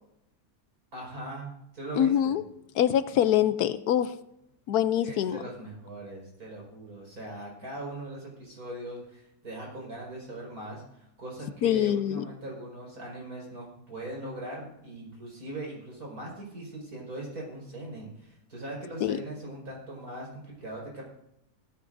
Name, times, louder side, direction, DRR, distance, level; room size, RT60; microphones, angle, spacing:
voice 1, 0.9-2.4 5.0-21.0, right 1 dB, 65° right, -2 dB, 5.4 m, -40 dB
voice 2, 2.0-2.4 2.8-4.1 4.7-5.4 11.6-12.2 19.0-19.2, left 10 dB, 75° left, 13 dB, 1.1 m, -24 dB
17.0 x 14.0 x 2.6 m, 0.81 s
omnidirectional pair, 1.7 m